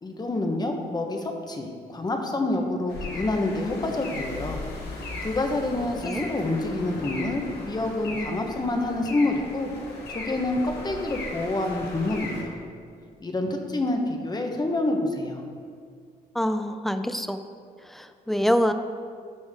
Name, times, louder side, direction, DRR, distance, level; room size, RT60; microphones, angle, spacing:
voice 1, 0.0-4.6 4.9-9.7 10.1-12.6 13.2-15.4, left 2 dB, 25° left, 3 dB, 1.1 m, -27 dB
Pedestrian Crossing Japan, 2.9-12.4, left 2 dB, 90° left, 1.7 m, -37 dB
voice 2, 16.3-17.4 17.9-18.7, equal, ahead, 9 dB, 0.5 m, -25 dB
12.0 x 6.2 x 3.7 m, 2.1 s
cardioid pair, 95°, 17 cm